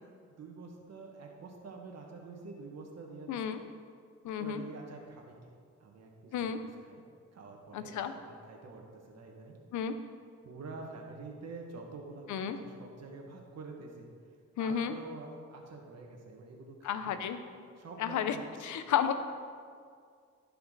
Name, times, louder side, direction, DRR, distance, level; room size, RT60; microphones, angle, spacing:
voice 1, 0.3-3.6 4.4-5.5 5.8-6.5 6.8-7.0 7.3-9.6 10.4-14.1 14.6-17.4 17.8-18.8, right 3 dB, 60° right, 1 dB, 1.9 m, -47 dB
voice 2, 3.3-3.6 4.2-4.6 6.3-6.6 7.7-8.1 9.7-9.9 12.3-12.6 14.6-14.9 16.8-17.4 18.0-18.4 18.6-19.1, left 8 dB, 75° left, 10 dB, 0.8 m, -32 dB
15.5 x 5.7 x 4.1 m, 2.1 s
cardioid pair, 90°, 30 cm